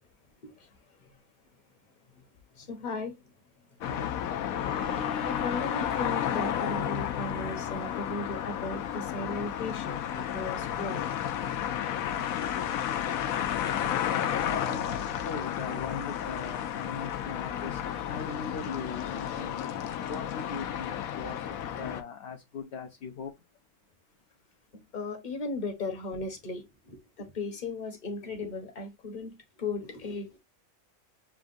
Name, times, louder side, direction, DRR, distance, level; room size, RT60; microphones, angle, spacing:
voice 1, 2.5-3.2 5.2-11.1 24.9-30.4, left 3 dB, 35° left, 1.1 m, -36 dB
sound 1, 3.8-22.0, left 10 dB, 85° left, 1.1 m, -32 dB
voice 2, 3.8-4.5 14.1-19.7 20.1-23.5, left 5 dB, 60° left, 0.8 m, -41 dB
Bowed string instrument, 4.5-9.6, left 4 dB, 10° left, 0.4 m, -44 dB
7.1 x 2.4 x 2.4 m
omnidirectional pair, 1.4 m